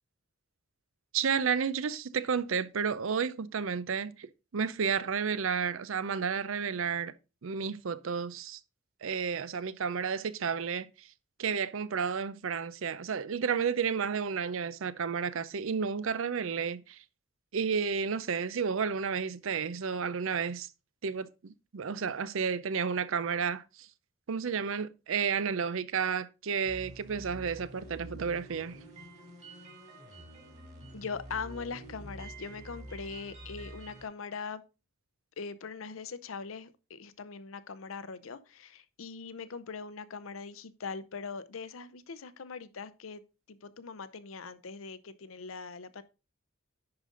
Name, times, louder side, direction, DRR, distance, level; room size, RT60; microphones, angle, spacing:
voice 1, 1.1-4.3 4.5-7.1 7.4-8.6 9.0-11.1 11.4-17.0 17.5-20.7 21.0-23.9 24.3-28.8, right 6 dB, 70° right, 0.5 m, -31 dB
sound 1, 26.6-34.0, right 1 dB, 35° right, 3.0 m, -47 dB
voice 2, 30.9-34.6 35.4-43.2 43.5-46.0, left 5 dB, 70° left, 0.6 m, -41 dB
10.5 x 5.0 x 3.8 m
head